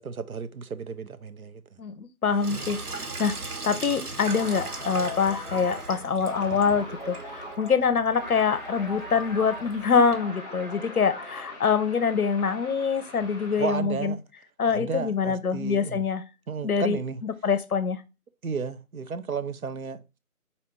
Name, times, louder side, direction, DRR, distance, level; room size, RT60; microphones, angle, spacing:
voice 1, 0.0-1.6 13.6-14.2 14.7-16.0 16.5-17.2 18.4-20.0, right 5 dB, 75° right, 0.6 m, -33 dB
voice 2, 1.8-3.3 3.6-14.1 14.6-16.2 16.6-18.0, left 6 dB, 75° left, 0.7 m, -25 dB
Sink (filling or washing), 2.3-10.1, right 3 dB, 90° right, 1.1 m, -39 dB
sound 1, 4.2-11.7, left 1 dB, 35° right, 0.8 m, -40 dB
sound 2, 6.2-7.5 8.2-13.8, left 1 dB, 50° right, 1.4 m, -45 dB
4.1 x 2.6 x 4.4 m
figure-of-eight pair, 175°, 44 cm